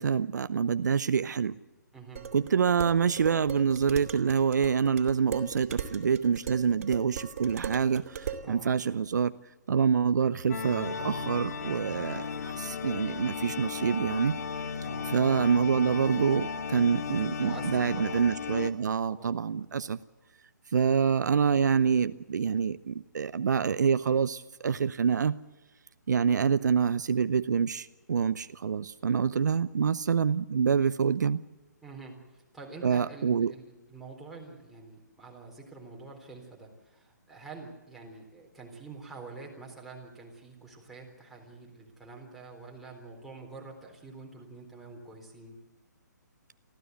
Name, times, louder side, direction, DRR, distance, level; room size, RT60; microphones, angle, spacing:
voice 1, 0.0-1.5 2.3-9.3 9.7-14.4 15.1-20.0 20.7-25.4 26.1-31.4 32.8-33.5, right 6 dB, 70° right, 13 dB, 0.7 m, -26 dB
voice 2, 1.9-2.2 8.4-8.7 14.8-15.1 17.4-18.2 19.1-19.3 19.8-19.9 31.8-45.6, right 3 dB, ahead, -3 dB, 3.8 m, -47 dB
Dishes pots and pans, 2.2-8.5, right 8 dB, 50° right, 2.7 m, -39 dB
sound 1, 10.5-18.7, left 6 dB, 55° left, 1.3 m, -35 dB
24.5 x 15.0 x 8.1 m, 1.1 s
hypercardioid pair, 150°, 10 cm